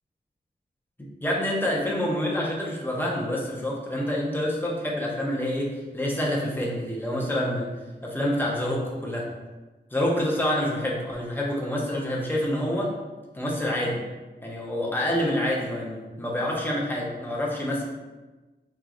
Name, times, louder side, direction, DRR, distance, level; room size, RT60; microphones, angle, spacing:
voice 1, 1.2-7.7 8.0-9.3 9.9-12.9 13.3-14.0 14.4-17.8, left 1 dB, 10° left, -3 dB, 0.8 m, -27 dB
4.5 x 3.0 x 2.5 m, 1.2 s
wide cardioid pair, 100°, 19 cm